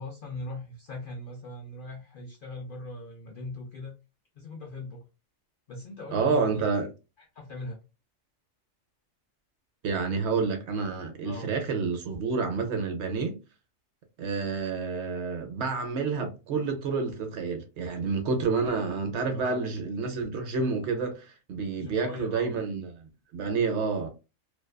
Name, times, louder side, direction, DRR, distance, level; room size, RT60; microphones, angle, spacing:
voice 1, 0.0-4.0 4.4-5.1 5.7-6.6 7.3-7.8 11.2-11.5 19.3-19.6 21.7-22.6, left 2 dB, 65° left, 0.5 m, -40 dB
voice 2, 6.1-6.9 9.8-13.4 14.2-24.1, right 4 dB, 65° right, 0.8 m, -29 dB
2.5 x 2.3 x 2.2 m
omnidirectional pair, 1.4 m